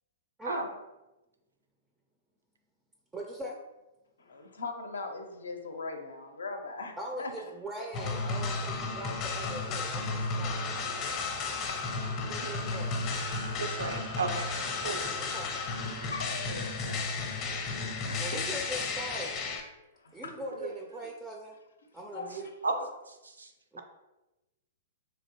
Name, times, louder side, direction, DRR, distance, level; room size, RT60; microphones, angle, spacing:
voice 1, 0.4-0.7 3.1-3.6 7.0-10.8 12.2-13.0 15.1-15.5 18.2-19.3 20.1-21.6 21.9-22.5 23.7-23.8, right 1 dB, 10° right, 0 dB, 0.4 m, -41 dB
voice 2, 4.2-7.5 7.8-7.9 9.0-9.2 9.7-9.8 10.8-11.1 11.7-11.8 16.1-18.4 19.9-20.3 22.1-22.5, left 3 dB, 75° left, 5 dB, 0.5 m, -41 dB
sound 1, 7.9-19.6, left 3 dB, 35° left, 0.6 m, -33 dB
voice 3, 13.6-14.6 14.8-15.1 20.5-20.7 22.6-22.7 23.1-23.5, right 3 dB, 80° right, 5 dB, 0.4 m, -34 dB
3.2 x 2.6 x 2.8 m, 1.0 s
figure-of-eight pair, 110°, 0 cm